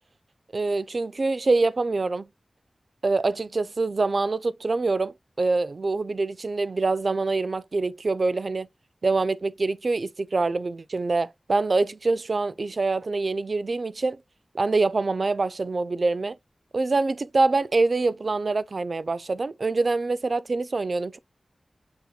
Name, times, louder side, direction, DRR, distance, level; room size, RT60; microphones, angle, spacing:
voice 1, 0.5-2.3 3.0-8.7 9.0-14.2 14.5-16.4 16.7-21.2, right 3 dB, 55° right, 0.3 m, -25 dB
6.2 x 2.9 x 2.3 m
wide cardioid pair, 100°, 0 cm